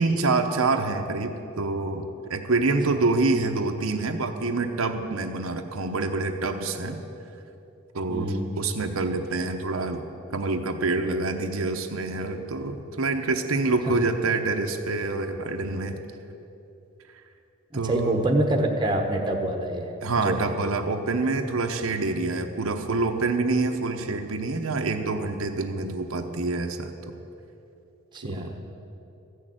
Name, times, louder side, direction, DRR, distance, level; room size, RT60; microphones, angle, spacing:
voice 1, 0.0-7.0 7.9-10.0 10.3-16.0 17.7-18.2 20.0-26.9 28.2-28.5, right 3 dB, 80° right, 5 dB, 0.8 m, -26 dB
voice 2, 8.1-8.5 13.9-14.0 17.7-19.9 20.2-20.5 28.1-28.6, right 1 dB, 20° right, 3 dB, 1.0 m, -26 dB
14.0 x 6.5 x 9.0 m, 2.8 s
head